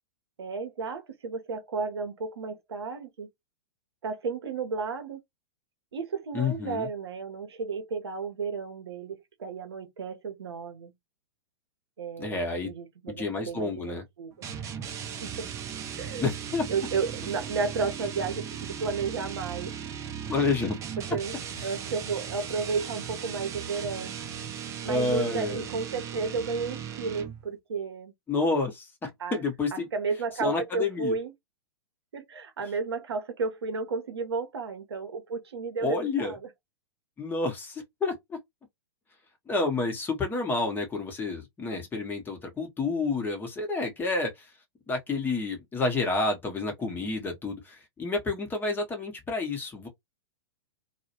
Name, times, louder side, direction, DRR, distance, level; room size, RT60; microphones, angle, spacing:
voice 1, 0.4-3.3 4.0-5.2 5.9-10.9 12.0-14.5 15.2-15.5 16.0-16.3 16.7-19.8 21.0-24.2 24.8-28.1 29.2-29.4 29.7-31.3 32.1-36.5, right 4 dB, 70° right, 0.7 m, -33 dB
voice 2, 6.3-6.9 12.2-12.7 13.1-14.0 16.2-16.7 20.3-20.8 24.9-25.7 28.3-29.9 30.4-31.1 35.8-36.3 37.2-38.4 39.5-44.5 44.9-49.9, left 3 dB, 15° left, 0.8 m, -29 dB
sound 1, 14.4-27.5, right 8 dB, 20° right, 0.5 m, -37 dB
2.3 x 2.1 x 2.9 m
figure-of-eight pair, 105°, 14 cm